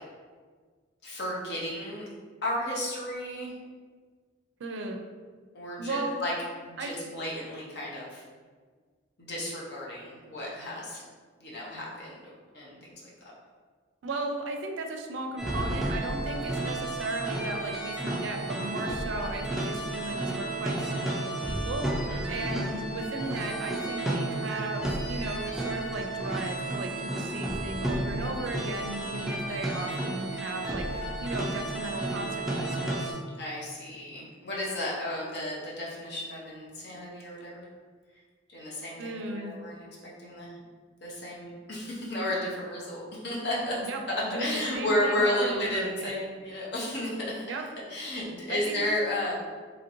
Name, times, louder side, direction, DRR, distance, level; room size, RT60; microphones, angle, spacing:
voice 1, 1.0-2.1 2.4-3.5 5.5-6.3 6.6-8.2 9.2-11.0 11.4-13.1 22.1-22.5 33.4-37.7 38.5-39.9 40.2-40.6 41.0-43.8 44.4-47.5 47.9-49.3, left 1 dB, 60° left, -5 dB, 0.8 m, -33 dB
voice 2, 4.6-5.0 5.8-6.2 6.8-6.9 14.0-33.2 39.0-39.6 43.9-44.0 44.2-46.2 47.5-47.6 48.5-48.8, right 2 dB, 75° right, 4 dB, 0.4 m, -36 dB
sound 1, 15.4-33.1, right 1 dB, ahead, 0.3 m, -32 dB
2.9 x 2.9 x 2.6 m, 1.5 s
head